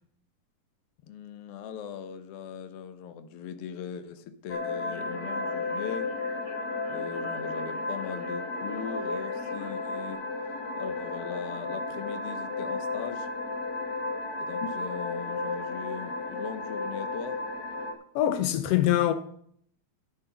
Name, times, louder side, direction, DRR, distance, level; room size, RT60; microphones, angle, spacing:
voice 1, 1.0-6.1 6.9-10.2 10.8-13.3 14.4-17.4, left 7 dB, 75° left, 1.4 m, -40 dB
sound 1, 4.5-17.9, left 3 dB, 40° left, 1.5 m, -33 dB
Speech, 4.8-10.1, right 1 dB, 30° right, 6.3 m, -52 dB
voice 2, 18.1-19.1, left 12 dB, 90° left, 1.4 m, -24 dB
10.5 x 7.9 x 5.8 m
omnidirectional pair, 3.8 m